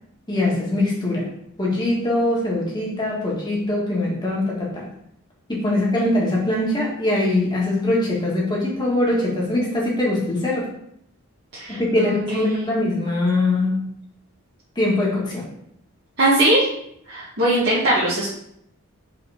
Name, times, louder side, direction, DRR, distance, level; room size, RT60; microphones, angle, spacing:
voice 1, 0.3-1.3 1.6-4.9 5.5-10.7 11.7-13.8 14.7-15.5, left 1 dB, 20° left, -4 dB, 1.8 m, -22 dB
voice 2, 11.5-12.7 16.2-16.7 17.1-18.3, right 1 dB, 50° right, -10 dB, 1.9 m, -20 dB
5.4 x 4.2 x 5.0 m, 0.73 s
head